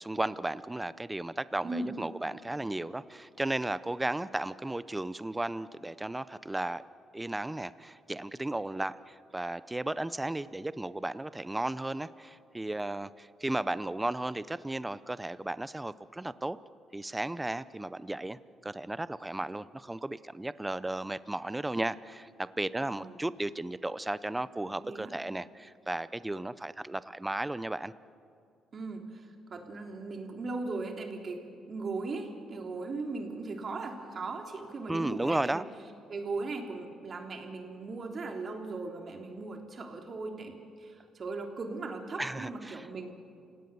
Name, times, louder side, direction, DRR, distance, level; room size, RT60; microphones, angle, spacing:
voice 1, 0.0-6.8 7.1-16.6 16.9-27.9 34.9-35.6 42.2-42.9, right 2 dB, 10° right, 16 dB, 0.6 m, -34 dB
voice 2, 1.6-2.0 22.9-23.2 24.8-25.1 28.7-35.6 36.1-43.1, right 3 dB, 45° right, 3 dB, 3.1 m, -38 dB
29.0 x 17.5 x 6.9 m, 2.4 s
cardioid pair, 90°, 0 cm